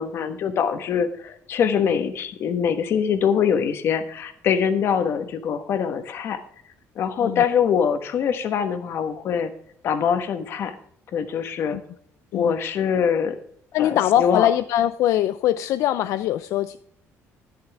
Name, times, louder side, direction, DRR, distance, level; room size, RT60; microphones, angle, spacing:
voice 1, 0.0-6.4 7.0-9.5 9.8-10.8 11.1-11.8 12.3-13.4 13.8-14.5, left 7 dB, 50° left, 9 dB, 1.2 m, -23 dB
voice 2, 13.7-16.8, left 12 dB, 70° left, 12 dB, 0.4 m, -22 dB
11.5 x 10.5 x 3.4 m, 0.64 s
cardioid pair, 175°, 6 cm